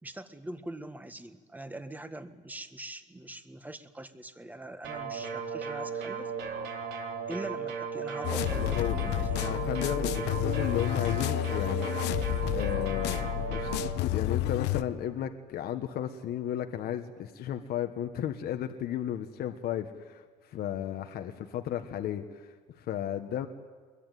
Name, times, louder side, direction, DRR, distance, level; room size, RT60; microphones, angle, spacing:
voice 1, 0.0-6.3 7.3-9.4, right 1 dB, 10° right, 9 dB, 1.6 m, -42 dB
sound 1, 4.8-13.9, right 5 dB, 90° right, 3.7 m, -36 dB
sound 2, 8.2-14.8, left 13 dB, 90° left, 0.9 m, -30 dB
voice 2, 8.6-9.0 9.4-12.1 12.5-13.2 13.5-23.5, left 10 dB, 65° left, 7 dB, 1.3 m, -34 dB
23.0 x 22.5 x 9.3 m, 1.5 s
cardioid pair, 110°, 17 cm